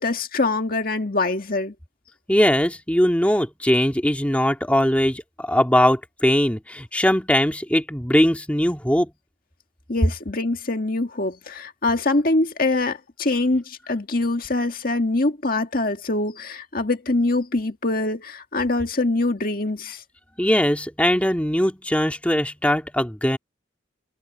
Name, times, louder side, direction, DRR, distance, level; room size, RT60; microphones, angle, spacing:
voice 1, 0.0-1.7 9.9-20.0, left 2 dB, 50° left, 1.9 m, -24 dB
voice 2, 2.3-9.1 20.4-23.4, equal, 5° left, 1.9 m, -20 dB
head